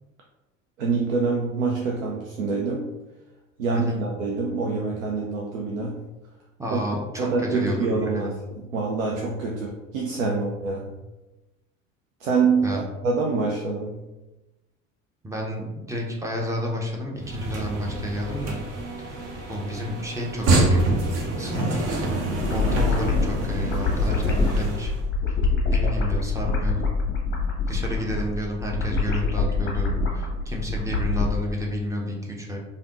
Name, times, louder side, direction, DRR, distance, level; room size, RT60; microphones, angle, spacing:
voice 1, 0.8-2.9 3.6-6.1 6.7-6.8 7.2-10.9 12.2-14.0, right 4 dB, 80° right, -1 dB, 0.5 m, -26 dB
voice 2, 6.6-8.3 12.6-12.8 15.2-18.6 19.5-20.9 21.4-21.9 22.5-24.9 25.7-26.8 27.7-32.6, equal, 10° right, -1 dB, 0.6 m, -30 dB
sound 1, 17.2-25.0, right 2 dB, 40° right, 0.8 m, -27 dB
sound 2, 22.3-31.3, left 3 dB, 30° left, 0.7 m, -25 dB
3.3 x 2.6 x 2.4 m, 1.1 s
figure-of-eight pair, 60°, 39 cm